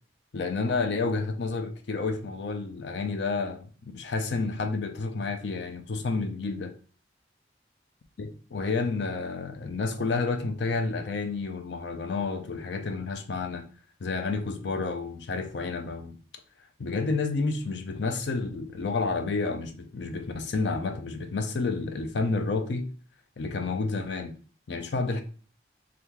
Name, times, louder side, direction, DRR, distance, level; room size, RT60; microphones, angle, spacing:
voice 1, 0.3-6.7 8.2-13.7 14.0-16.2 16.8-22.9 23.4-24.4 24.7-25.2, left 3 dB, 75° left, 0.5 m, -30 dB
3.0 x 2.4 x 3.6 m
head